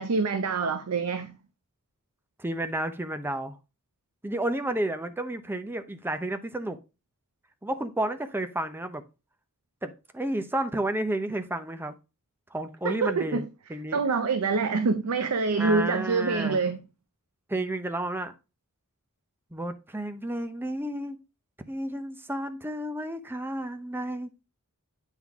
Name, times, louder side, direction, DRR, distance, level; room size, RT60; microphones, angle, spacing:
voice 1, 0.0-1.4 12.8-13.4 13.9-16.9, right 4 dB, 70° right, 0.6 m, -26 dB
voice 2, 2.4-3.6 4.2-6.8 7.6-9.0 9.8-12.0 12.5-13.4 13.7-14.0 15.6-16.6 17.5-18.3 19.5-21.2 21.7-24.3, right 1 dB, 10° right, 0.6 m, -31 dB
9.1 x 3.8 x 3.5 m
head